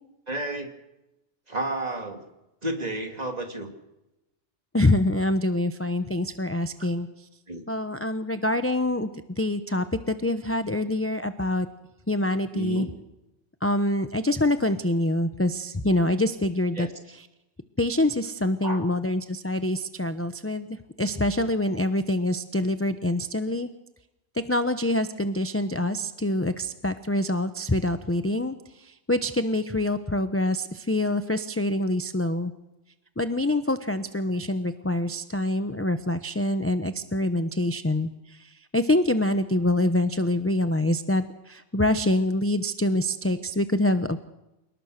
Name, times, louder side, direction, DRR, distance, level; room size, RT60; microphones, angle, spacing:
voice 1, 0.3-0.7 1.5-2.2 2.6-3.7 7.5-7.6 12.5-12.9 16.7-16.9 18.6-18.9, right 2 dB, 35° right, 4 dB, 2.8 m, -31 dB
voice 2, 4.7-7.1 7.7-9.1 9.4-11.7 12.1-12.9 13.6-16.9 17.8-23.7 24.5-28.6 29.1-32.5 33.2-38.1 38.7-44.2, left 1 dB, 15° left, 9 dB, 0.8 m, -25 dB
28.0 x 19.5 x 6.6 m, 0.94 s
omnidirectional pair, 1.2 m